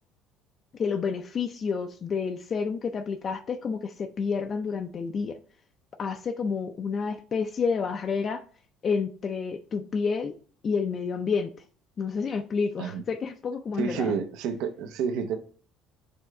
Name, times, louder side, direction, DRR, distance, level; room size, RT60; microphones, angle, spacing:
voice 1, 0.7-5.4 6.0-8.4 8.8-10.3 10.6-11.6 12.0-14.1, left 5 dB, 35° left, 0.4 m, -29 dB
voice 2, 13.8-15.4, right 6 dB, 75° right, 0.7 m, -29 dB
6.9 x 3.3 x 4.7 m
cardioid pair, 135°, 0 cm